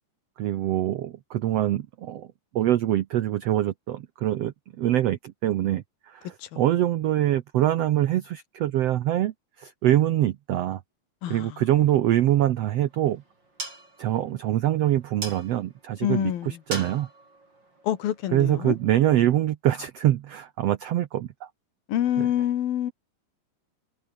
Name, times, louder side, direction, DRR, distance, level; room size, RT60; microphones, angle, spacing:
voice 1, 0.4-2.3 2.5-10.8 11.3-13.2 14.0-17.1 18.3-21.5 22.2-22.3, right 13 dB, 90° right, 1.4 m, -24 dB
voice 2, 11.2-11.6 16.0-16.6 17.8-18.8 21.9-22.9, left 11 dB, 80° left, 3.5 m, -27 dB
sound 1, 12.4-18.8, right 2 dB, 30° right, 7.0 m, -42 dB
omnidirectional pair, 4.1 m